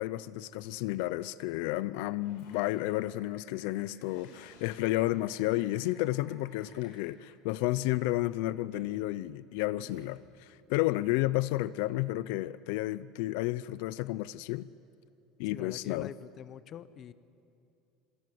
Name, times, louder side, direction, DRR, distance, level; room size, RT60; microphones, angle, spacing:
voice 1, 0.0-14.7 15.4-16.1, left 17 dB, 65° left, 0.5 m, -32 dB
Typing, 2.2-6.9, left 6 dB, 80° left, 5.1 m, -58 dB
sound 1, 4.2-4.6 5.4-5.7 6.5-6.8 7.7-8.0 8.7-9.0 9.8-10.2, right 6 dB, 80° right, 3.8 m, -55 dB
voice 2, 15.5-17.1, left 9 dB, 30° left, 0.6 m, -44 dB
27.0 x 22.0 x 7.8 m
cardioid pair, 175°, 0 cm